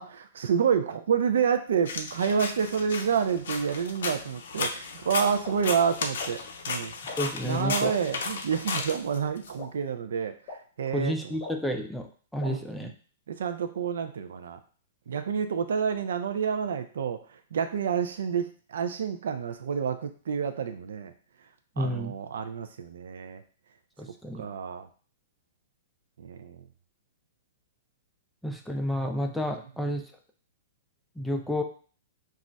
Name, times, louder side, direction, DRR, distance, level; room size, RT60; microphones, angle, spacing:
voice 1, 0.0-6.4 6.7-6.9 7.4-10.3 10.8-11.1 12.4-12.9 13.3-14.6 15.1-17.2 17.5-21.1 21.8-23.4 24.4-24.9 26.2-26.6, right 7 dB, 80° right, 8 dB, 0.3 m, -28 dB
sound 1, 1.9-9.5, left 4 dB, 75° left, 0.5 m, -35 dB
sound 2, 5.4-5.5 6.2-6.3 7.1-7.2 7.9-8.0 8.8-8.9 9.6-9.7 10.5-10.6 11.4-11.5 12.4-12.5, left 3 dB, 35° left, 0.7 m, -38 dB
voice 2, 7.2-7.9 10.9-12.9 21.8-22.1 24.0-24.4 28.4-30.0 31.2-31.6, equal, ahead, 3 dB, 0.4 m, -30 dB
2.3 x 2.1 x 3.9 m, 0.41 s
hypercardioid pair, 145°, 0 cm